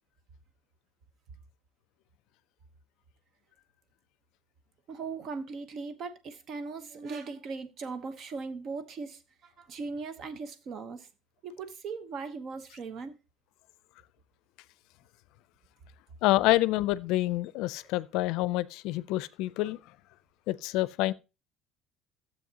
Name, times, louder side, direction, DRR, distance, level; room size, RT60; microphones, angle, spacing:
voice 1, 4.9-11.1 11.4-13.2, right 4 dB, 40° right, 1.0 m, -39 dB
voice 2, 16.2-19.8 20.5-21.1, left 17 dB, 70° left, 0.5 m, -27 dB
13.0 x 7.8 x 2.9 m
cardioid pair, 150°, 0 cm